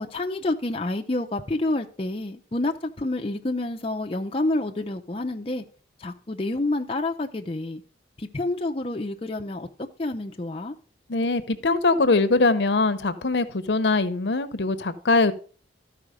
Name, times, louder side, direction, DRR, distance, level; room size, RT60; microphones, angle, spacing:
voice 1, 0.0-5.6 6.0-7.8 8.2-9.7 10.0-10.7, left 2 dB, 30° left, 0.6 m, -28 dB
voice 2, 11.1-15.3, left 3 dB, 70° left, 0.8 m, -22 dB
13.0 x 4.9 x 5.0 m
head